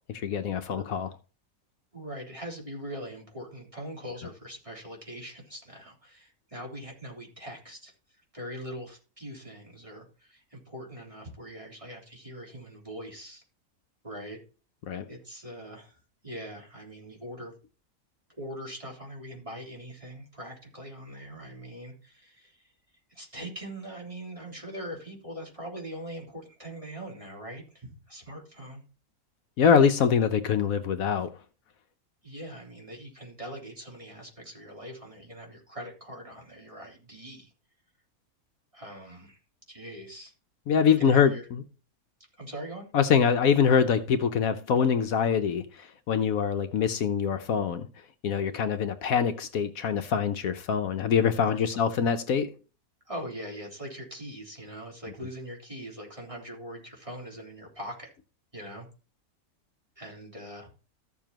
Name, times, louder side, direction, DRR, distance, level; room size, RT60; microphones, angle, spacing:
voice 1, 0.1-1.1 14.9-15.0 29.6-31.3 40.7-41.3 42.9-45.6 46.1-47.9 48.2-52.5, left 7 dB, 70° left, 1.2 m, -24 dB
voice 2, 1.9-7.9 8.3-13.4 14.0-14.4 15.1-16.0 16.2-17.5 18.4-22.7 23.1-28.8 32.2-37.5 38.7-39.4 39.7-40.3 41.0-41.5 42.4-42.9 51.5-51.9 53.1-58.1 58.5-58.9 60.0-60.7, equal, 20° right, 3.7 m, -42 dB
14.0 x 7.1 x 2.9 m
omnidirectional pair, 1.5 m